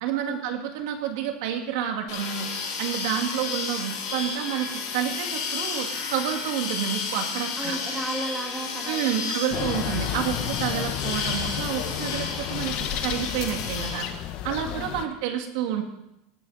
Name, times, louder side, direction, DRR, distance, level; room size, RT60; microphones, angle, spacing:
voice 1, 0.0-2.5 2.8-7.8 8.9-12.8 13.0-14.1 14.4-15.8, right 9 dB, 70° right, 4 dB, 2.4 m, -29 dB
sound 1, 2.1-14.1, left 5 dB, 75° left, 5.8 m, -32 dB
voice 2, 7.6-9.4 14.7-15.1, right 1 dB, 10° right, 0 dB, 2.3 m, -34 dB
sound 2, 9.5-15.1, left 12 dB, 45° left, 0.8 m, -32 dB
18.5 x 11.0 x 4.2 m, 0.86 s
supercardioid pair, 160°, 2 cm